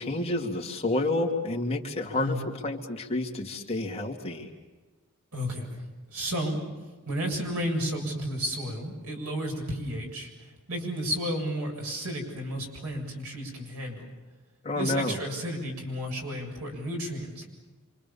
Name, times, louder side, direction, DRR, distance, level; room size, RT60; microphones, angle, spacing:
voice 1, 0.0-2.4 2.6-4.5 14.6-15.2, left 2 dB, 25° left, 0 dB, 2.7 m, -29 dB
voice 2, 2.2-2.5 5.3-5.7 6.1-6.6 7.1-14.1 14.8-17.4, equal, 85° right, 1 dB, 7.5 m, -32 dB
28.0 x 26.0 x 7.1 m, 1.3 s
head